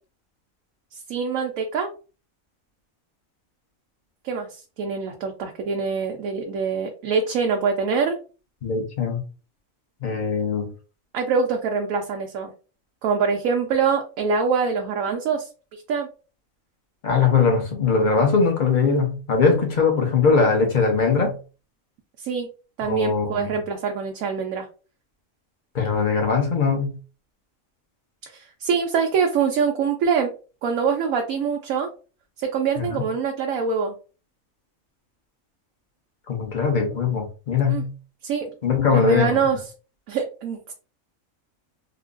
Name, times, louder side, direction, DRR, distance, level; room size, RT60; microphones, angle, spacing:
voice 1, 0.9-1.9 4.2-8.2 11.1-12.5 13.0-15.5 15.9-16.1 22.2-22.5 22.8-24.7 28.2-30.3 30.6-31.9 32.4-33.9 37.7-37.8 38.2-38.5 38.9-39.6 40.1-40.7, right 5 dB, 80° right, 1.0 m, -24 dB
voice 2, 8.6-9.2 10.0-10.7 17.0-21.4 22.8-23.5 25.7-27.0 32.8-33.0 36.3-37.9 38.6-39.4, left 5 dB, 40° left, 0.8 m, -21 dB
3.7 x 2.4 x 2.4 m
omnidirectional pair, 1.4 m